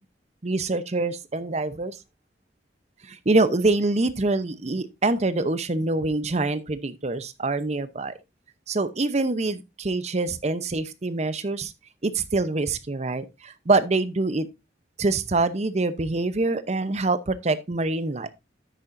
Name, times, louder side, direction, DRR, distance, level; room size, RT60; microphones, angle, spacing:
voice 1, 0.4-2.0 3.0-8.1 8.7-11.7 12.0-14.5 15.0-18.3, right 2 dB, 40° right, 0.7 m, -25 dB
10.0 x 8.7 x 2.6 m
head